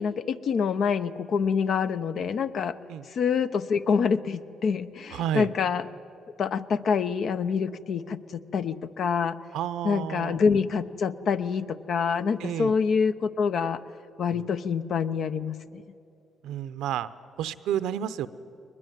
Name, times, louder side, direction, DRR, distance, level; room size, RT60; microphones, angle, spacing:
voice 1, 0.0-2.8 3.1-5.8 6.4-9.4 9.8-13.8 14.2-15.8, left 6 dB, 60° left, 12 dB, 0.8 m, -26 dB
voice 2, 5.1-5.5 9.5-10.4 12.4-12.8 14.3-14.4 16.4-17.1 17.4-18.3, right 10 dB, 90° right, 14 dB, 0.7 m, -30 dB
21.0 x 21.0 x 9.2 m, 2.6 s
cardioid pair, 90°, 0 cm